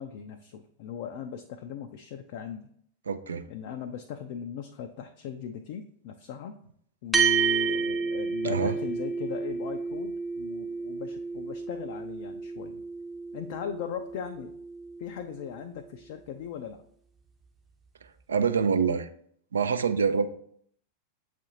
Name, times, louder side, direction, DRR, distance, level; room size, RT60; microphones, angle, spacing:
voice 1, 0.0-2.7 3.5-6.6 7.0-12.8 13.3-14.5 15.0-16.8, left 8 dB, 50° left, 6 dB, 0.3 m, -38 dB
voice 2, 3.1-3.4 8.4-8.7 18.3-19.1 19.5-20.3, right 6 dB, 70° right, 9 dB, 0.3 m, -25 dB
sound 1, 7.1-15.8, right 5 dB, 10° right, 0.6 m, -31 dB
7.5 x 2.5 x 2.8 m, 0.65 s
figure-of-eight pair, 90°, 0 cm